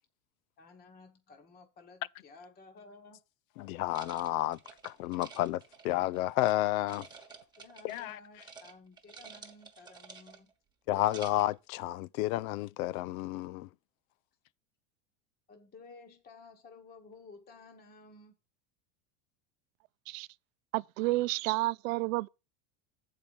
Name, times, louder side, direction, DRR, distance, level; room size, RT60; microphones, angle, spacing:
voice 1, 0.6-3.2 7.6-10.5 15.5-18.4, left 3 dB, 25° left, 1.1 m, -54 dB
voice 2, 3.6-4.6 4.8-7.1 7.8-8.2 10.9-13.7, left 15 dB, 80° left, 0.5 m, -31 dB
sound 1, 3.9-6.5 6.9-8.1 8.4-8.7 9.0-10.5 10.9-11.6, right 5 dB, 10° right, 1.2 m, -51 dB
voice 3, 20.7-22.3, right 20 dB, 70° right, 0.5 m, -30 dB
7.2 x 4.8 x 6.9 m
supercardioid pair, 135°, 41 cm